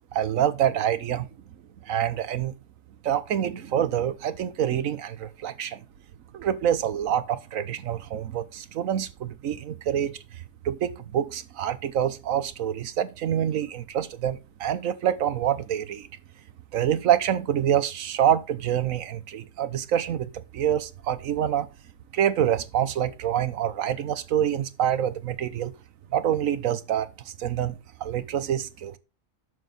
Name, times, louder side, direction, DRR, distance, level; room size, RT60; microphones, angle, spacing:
voice 1, 0.1-1.3 1.9-2.5 3.0-5.8 6.3-10.2 10.6-16.1 16.7-21.7 22.1-25.7 26.1-27.1 27.4-29.0, right 10 dB, 90° right, 1.3 m, -26 dB
9.5 x 6.4 x 3.9 m
omnidirectional pair, 1.4 m